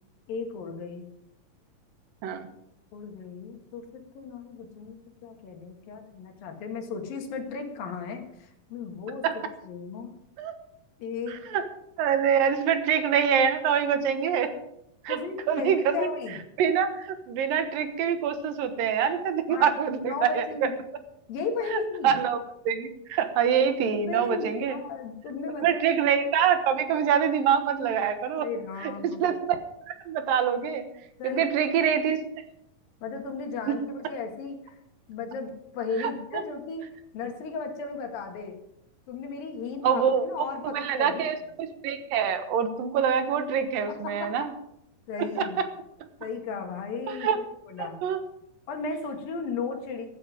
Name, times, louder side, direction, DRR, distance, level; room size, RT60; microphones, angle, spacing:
voice 1, 0.3-1.1 2.9-10.1 11.0-11.4 15.1-16.4 19.5-19.7 20.0-20.8 21.3-22.2 23.9-26.0 28.4-29.4 31.2-31.7 33.0-34.8 35.1-36.9 37.1-38.6 39.1-41.3 43.9-44.5 45.1-45.6 46.2-47.3 47.7-48.0 48.7-50.1, left 5 dB, 85° left, 4 dB, 3.6 m, -35 dB
voice 2, 11.3-11.6 12.0-14.5 15.0-15.2 15.5-16.1 16.6-20.7 21.7-22.4 22.7-24.8 25.6-28.5 28.8-28.9 29.2-29.6 29.9-30.9 31.2-32.4 33.7-33.8 36.0-36.4 39.8-40.3 40.6-44.5 45.2-45.5 47.1-47.4 47.8-48.2, right 7 dB, 80° right, 9 dB, 3.0 m, -25 dB
14.5 x 13.5 x 5.1 m, 0.79 s
omnidirectional pair, 3.9 m